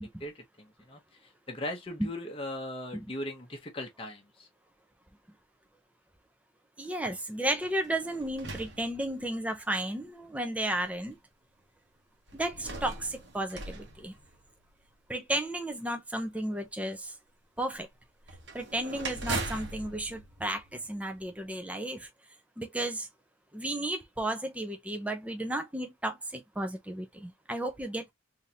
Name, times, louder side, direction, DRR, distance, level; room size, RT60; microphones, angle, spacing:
voice 1, 0.6-1.0 1.5-4.5, left 1 dB, 25° left, 0.8 m, -38 dB
voice 2, 6.8-11.2 12.3-14.1 15.1-17.1 17.6-17.9 18.5-22.1 22.6-23.1 23.5-28.1, right 1 dB, 5° right, 0.6 m, -33 dB
sound 1, 7.6-9.6 10.3-10.4 12.3-14.8 18.2-21.3, right 2 dB, 60° right, 1.0 m, -40 dB
3.5 x 2.7 x 2.8 m
head